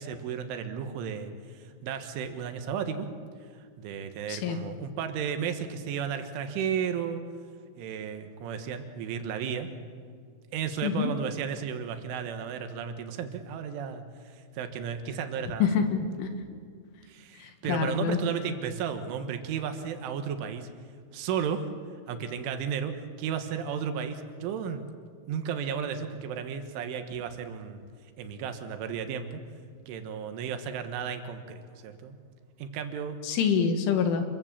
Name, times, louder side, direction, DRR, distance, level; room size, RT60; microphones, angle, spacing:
voice 1, 0.0-3.1 3.5-7.2 7.8-9.7 10.5-15.8 17.1-20.7 21.1-21.7 22.1-24.9 25.3-27.8 28.2-29.4 29.9-32.2 32.6-33.2, right 7 dB, 85° right, 7 dB, 3.9 m, -34 dB
voice 2, 10.8-11.1 15.6-16.3 17.7-18.2 33.2-34.2, left 6 dB, 85° left, 7 dB, 4.2 m, -26 dB
28.0 x 22.0 x 7.5 m, 2.2 s
omnidirectional pair, 5.4 m